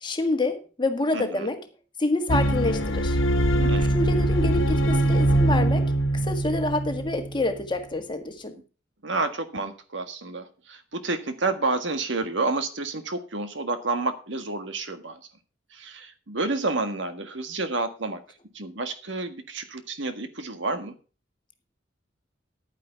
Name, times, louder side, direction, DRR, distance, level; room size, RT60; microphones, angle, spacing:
voice 1, 0.0-1.6 2.0-3.2 3.8-5.9 6.2-8.6, left 2 dB, 25° left, 6 dB, 1.7 m, -27 dB
voice 2, 1.1-1.5 3.5-3.9 9.0-15.2 15.7-18.2 18.5-20.9, right 3 dB, 70° right, 8 dB, 1.7 m, -30 dB
sound 1, 2.3-7.6, right 1 dB, 90° left, 1.5 m, -23 dB
11.0 x 9.6 x 4.5 m, 0.34 s
head